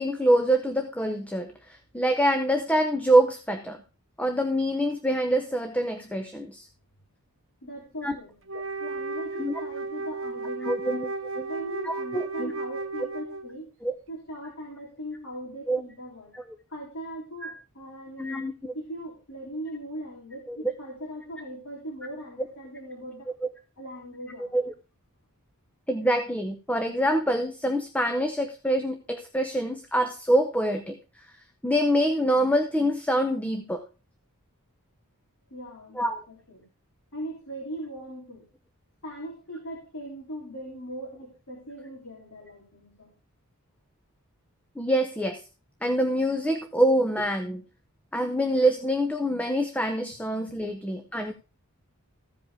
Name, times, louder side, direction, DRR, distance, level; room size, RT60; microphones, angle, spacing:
voice 1, 0.0-3.8 4.2-6.7 8.0-8.2 9.3-9.5 10.6-11.1 11.4-11.5 11.8-12.5 13.8-13.9 15.7-15.8 16.3-16.6 17.4-17.5 18.2-18.7 20.5-20.7 24.4-24.7 25.9-31.0 31.3-31.4 31.6-33.8 35.9-36.1 44.8-45.4 45.8-47.6 48.1-51.3, right 1 dB, 5° left, 6 dB, 0.7 m, -25 dB
voice 2, 7.6-8.3 8.8-11.1 11.4-13.7 14.1-16.3 16.7-18.5 18.7-23.3 23.8-24.5 35.5-36.6 37.1-38.4 39.0-43.1 50.7-50.8, equal, 70° left, -2 dB, 3.2 m, -39 dB
Wind instrument woodwind instrument, 8.5-13.6, right 3 dB, 60° right, 1.1 m, -34 dB
15.0 x 5.2 x 4.8 m, 0.34 s
head